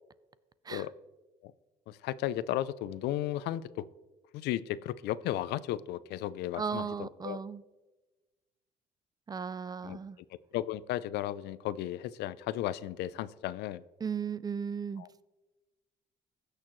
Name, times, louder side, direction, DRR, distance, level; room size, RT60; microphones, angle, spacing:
voice 1, 1.9-3.9 4.3-7.4 9.8-10.0 10.5-13.8 15.0-15.1, left 13 dB, 80° left, 18 dB, 0.4 m, -34 dB
voice 2, 6.6-7.6 9.3-10.2 14.0-15.1, right 6 dB, 25° right, 17 dB, 0.4 m, -36 dB
16.0 x 6.6 x 3.1 m, 1.1 s
cardioid pair, 110°, 17 cm